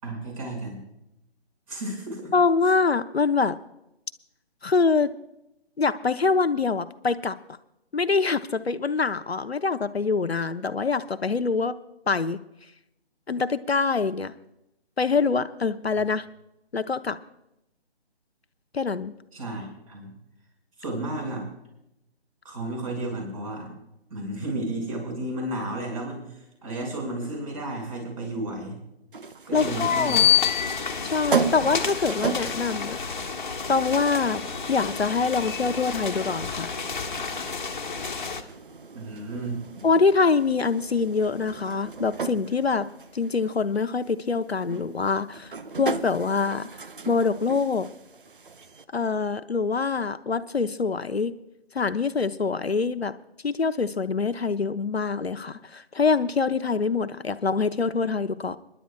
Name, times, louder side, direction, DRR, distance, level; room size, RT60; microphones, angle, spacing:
voice 1, 0.0-0.8 1.7-2.3 19.3-20.1 20.8-21.5 22.4-23.7 24.1-28.8 29.5-30.2 38.9-39.6, right 1 dB, 30° right, 1 dB, 5.6 m, -32 dB
voice 2, 2.3-3.6 4.6-5.1 5.8-7.4 7.9-11.8 12.1-12.4 13.3-14.3 15.0-16.3 16.7-17.2 18.7-19.1 29.5-30.3 31.0-33.0 33.7-34.4 34.7-36.7 39.8-42.9 43.1-46.7 47.1-47.9 48.9-51.3 51.7-53.1 53.4-58.6, left 4 dB, 75° left, 11 dB, 0.8 m, -24 dB
sound 1, 29.1-48.8, right 5 dB, 55° right, 0.8 m, -36 dB
sound 2, 29.5-38.4, left 7 dB, 50° left, 1.3 m, -28 dB
29.0 x 11.0 x 2.3 m, 0.84 s
figure-of-eight pair, 145°, 32 cm